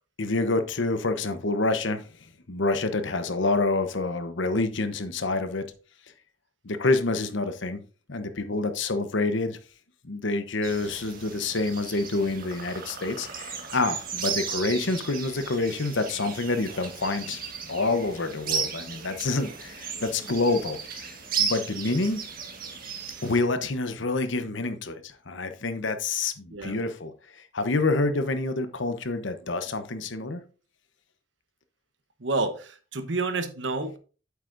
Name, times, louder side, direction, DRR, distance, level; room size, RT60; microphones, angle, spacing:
voice 1, 0.2-2.1 2.5-5.7 6.6-7.8 8.1-9.6 10.0-17.4 17.7-22.2 23.2-30.4, left 3 dB, 75° left, 1.0 m, -27 dB
sound 1, 10.6-23.4, right 6 dB, 45° right, 1.6 m, -35 dB
voice 2, 32.2-34.0, right 3 dB, 70° right, 1.0 m, -29 dB
8.3 x 8.1 x 2.6 m
head